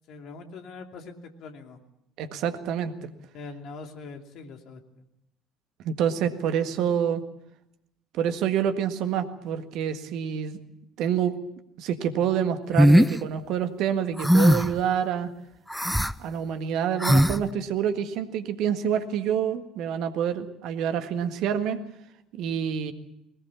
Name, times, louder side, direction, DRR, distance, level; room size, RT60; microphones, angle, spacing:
voice 1, 0.1-1.8 3.3-4.8, left 4 dB, 50° left, 5 dB, 2.8 m, -42 dB
voice 2, 2.2-3.1 5.8-7.2 8.1-10.6 11.0-11.3 11.8-15.3 16.2-21.8 22.3-22.9, right 8 dB, 55° right, 9 dB, 1.7 m, -27 dB
sound 1, 12.8-13.1 14.2-14.8 15.7-16.1 17.0-17.4, equal, ahead, 0.7 m, -18 dB
21.0 x 20.0 x 7.2 m, 0.82 s
figure-of-eight pair, 60°, 0 cm